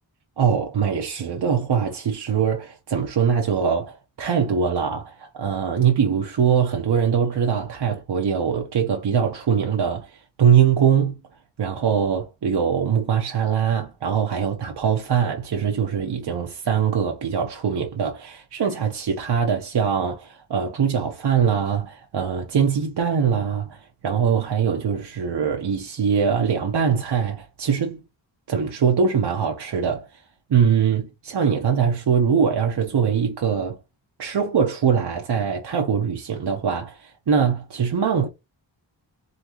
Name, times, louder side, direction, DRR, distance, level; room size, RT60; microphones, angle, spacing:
voice 1, 0.4-11.1 11.6-28.0 28.5-30.2 30.5-33.8 34.2-38.3, right 7 dB, 60° right, 0.9 m, -22 dB
4.0 x 4.0 x 3.0 m
wide cardioid pair, 160°, 45 cm